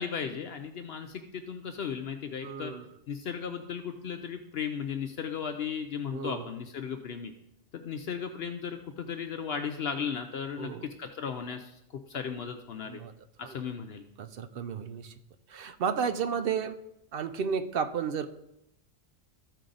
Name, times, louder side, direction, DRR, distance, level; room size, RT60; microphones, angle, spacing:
voice 1, 0.0-2.7 3.1-7.3 7.7-10.7 11.0-11.8 12.1-13.0 13.4-14.0, left 7 dB, 60° left, 6 dB, 0.8 m, -36 dB
voice 2, 2.4-2.8 6.1-6.5 10.6-10.9 12.9-13.1 13.4-13.6 14.2-15.1 15.5-16.8 17.1-18.3, right 6 dB, 60° right, 10 dB, 0.7 m, -32 dB
14.0 x 4.7 x 3.8 m, 0.82 s
omnidirectional pair, 1.2 m